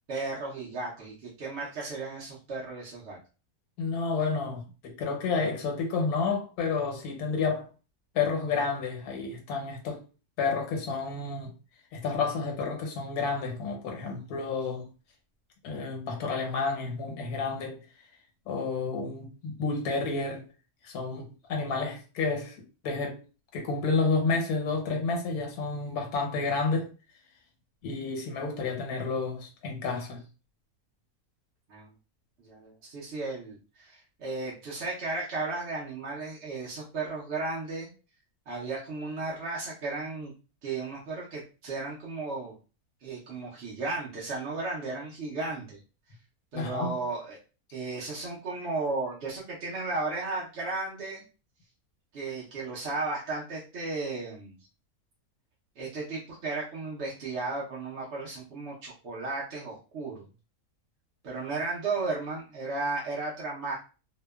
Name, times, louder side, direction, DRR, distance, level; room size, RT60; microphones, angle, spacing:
voice 1, 0.1-3.2 31.7-31.9 32.4-37.9 38.5-40.3 40.6-42.6 43.0-45.8 46.5-47.4 47.7-51.2 52.1-54.5 55.8-60.3 61.2-63.7, right 3 dB, 60° right, 0.8 m, -34 dB
voice 2, 3.8-7.7 8.1-10.0 10.4-11.5 11.9-14.9 15.6-17.8 18.5-20.4 20.8-22.6 22.8-23.2 23.5-26.9 27.8-30.2 46.5-47.0, left 4 dB, 90° left, 1.2 m, -30 dB
2.8 x 2.1 x 2.2 m
omnidirectional pair, 1.6 m